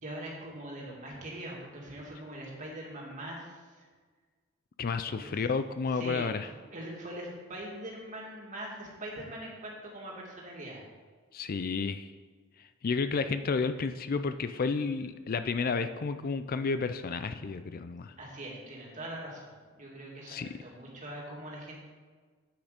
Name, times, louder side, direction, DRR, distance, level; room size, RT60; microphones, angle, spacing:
voice 1, 0.0-3.9 5.1-5.4 5.9-10.8 18.2-21.8, right 1 dB, 35° right, -3 dB, 2.6 m, -42 dB
voice 2, 4.8-6.5 11.3-12.1 12.6-18.1 20.3-20.5, left 4 dB, 45° left, 10 dB, 0.4 m, -31 dB
8.7 x 8.5 x 5.2 m, 1.5 s
head